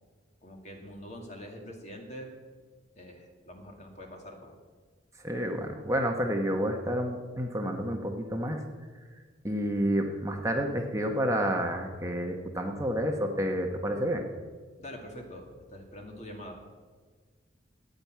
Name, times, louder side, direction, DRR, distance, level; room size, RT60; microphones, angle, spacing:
voice 1, 0.4-2.3 3.0-4.5 14.8-16.6, equal, 35° left, 2 dB, 2.2 m, -44 dB
voice 2, 5.2-8.6 9.4-14.2, equal, 15° right, 3 dB, 1.1 m, -29 dB
10.5 x 8.8 x 9.4 m, 1.5 s
head